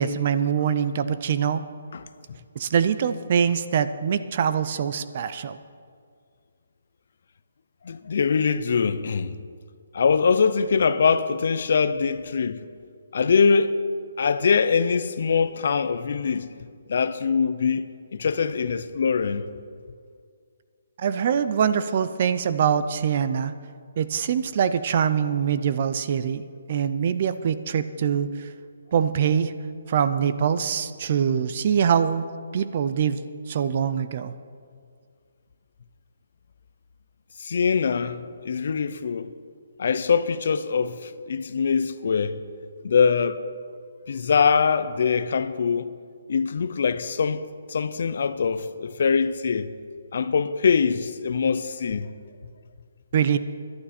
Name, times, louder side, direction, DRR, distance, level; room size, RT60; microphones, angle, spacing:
voice 1, 0.0-1.6 2.6-5.6 21.0-23.5 24.0-28.3 28.9-29.5 29.9-32.3 32.5-33.2 33.5-34.3 53.1-53.4, right 8 dB, 30° right, 0.4 m, -23 dB
voice 2, 7.8-9.4 9.9-12.6 13.1-13.8 14.2-16.5 16.9-19.4 37.4-39.3 39.8-42.3 42.8-43.4 44.1-45.9 46.3-47.4 47.7-49.7 50.1-52.1, left 5 dB, 45° left, 0.5 m, -23 dB
17.5 x 11.5 x 4.3 m
hypercardioid pair, 175°, 0 cm